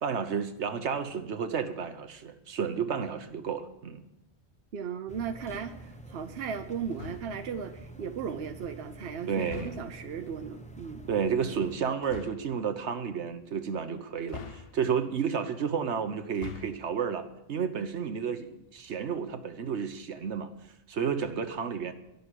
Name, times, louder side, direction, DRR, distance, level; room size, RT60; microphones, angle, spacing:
voice 1, 0.0-4.0 9.3-9.8 11.1-20.5 20.9-21.9, right 6 dB, 85° right, 8 dB, 1.3 m, -31 dB
voice 2, 4.7-11.0, right 7 dB, 65° right, 8 dB, 1.0 m, -36 dB
sound 1, 5.1-11.8, right 1 dB, 5° left, 0.8 m, -47 dB
sound 2, 6.9-7.5 9.4-10.1 12.0-12.5 14.3-15.1 16.2-16.9, left 8 dB, 60° left, 1.0 m, -44 dB
11.5 x 6.8 x 9.7 m, 0.87 s
omnidirectional pair, 1.1 m